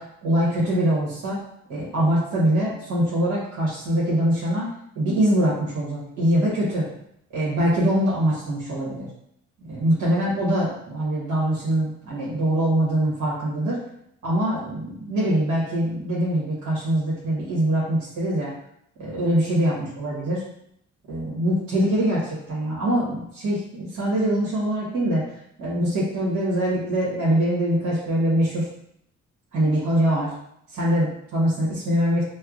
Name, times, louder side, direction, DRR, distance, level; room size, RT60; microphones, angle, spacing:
voice 1, 0.0-1.4 1.7-4.7 4.9-6.9 7.3-9.1 9.6-13.8 14.2-18.5 19.0-20.4 21.1-25.2 25.6-28.7 29.5-30.3 30.7-32.2, right 1 dB, 80° right, -7 dB, 1.2 m, -23 dB
4.4 x 2.1 x 2.4 m, 0.73 s
cardioid pair, 90°, 30 cm